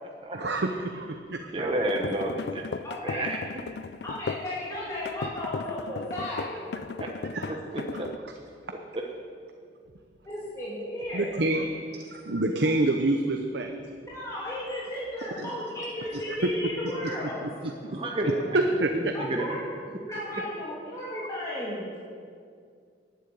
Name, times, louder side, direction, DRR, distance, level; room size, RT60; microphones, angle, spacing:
voice 1, 0.3-1.5 7.3-7.5 7.7-8.0 11.1-11.7 12.1-13.7 15.4-15.5 16.1-16.4 17.0-18.0 18.5-19.1, right 2 dB, 70° right, 4 dB, 0.8 m, -28 dB
voice 2, 1.5-3.6 7.0-7.1 7.5-8.1 17.8-18.4 19.0-19.5, right 1 dB, 30° right, 0 dB, 1.1 m, -31 dB
sound 1, 1.8-4.5 5.0-8.2, left 4 dB, 65° left, 0.4 m, -36 dB
voice 3, 2.8-3.3 4.0-6.8 10.3-11.3 14.1-17.5 19.1-19.7 20.1-21.9, left 1 dB, 15° left, -9 dB, 2.9 m, -34 dB
11.5 x 9.6 x 8.6 m, 2.2 s
head